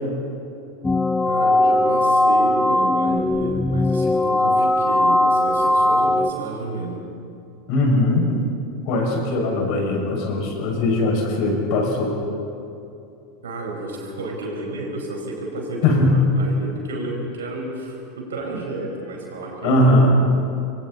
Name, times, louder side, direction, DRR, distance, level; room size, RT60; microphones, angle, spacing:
sound 1, 0.8-6.3, left 1 dB, 10° left, 0.7 m, -19 dB
voice 1, 1.2-7.0 13.4-19.8, right 2 dB, 70° right, 0 dB, 5.5 m, -31 dB
voice 2, 7.7-8.4 8.9-12.1 15.8-16.2 19.6-20.2, left 1 dB, 50° left, 0 dB, 6.2 m, -19 dB
27.0 x 23.5 x 4.2 m, 2.7 s
figure-of-eight pair, 85°, 0 cm